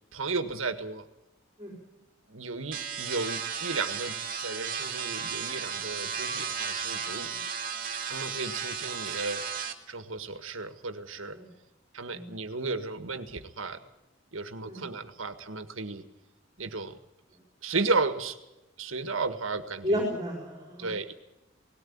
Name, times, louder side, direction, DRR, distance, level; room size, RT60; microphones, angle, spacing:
voice 1, 0.1-1.0 2.3-7.3 8.1-9.4 9.9-11.4 11.9-13.8 14.3-16.0 16.6-17.0 17.6-18.4 18.8-20.0 20.8-21.1, right 3 dB, 85° right, 9 dB, 1.7 m, -34 dB
sound 1, 2.7-9.7, right 6 dB, 45° right, 2.3 m, -34 dB
voice 2, 19.8-20.9, equal, 20° right, 0 dB, 4.3 m, -32 dB
19.0 x 17.5 x 8.7 m, 0.98 s
head